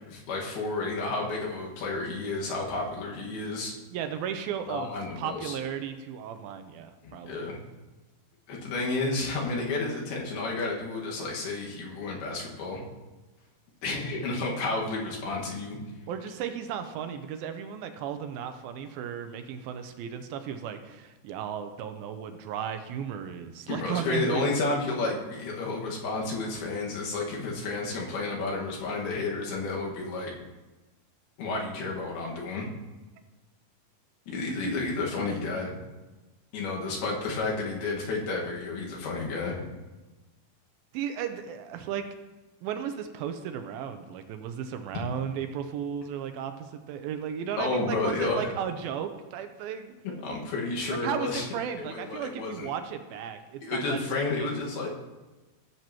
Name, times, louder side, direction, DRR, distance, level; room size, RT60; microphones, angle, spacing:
voice 1, 0.1-3.7 4.7-5.6 7.0-7.6 8.5-12.8 13.8-15.8 23.7-30.3 31.4-32.7 34.3-35.7 36.5-39.6 44.9-45.0 47.6-48.5 50.0-51.5 51.8-52.7 53.6-54.9, left 3 dB, 85° left, -2 dB, 3.6 m, -31 dB
voice 2, 3.9-7.5 16.1-24.4 24.7-24.8 40.9-42.0 42.6-49.9 50.9-54.5, right 8 dB, 85° right, 8 dB, 2.4 m, -35 dB
16.0 x 7.6 x 2.9 m, 1.1 s
omnidirectional pair, 4.4 m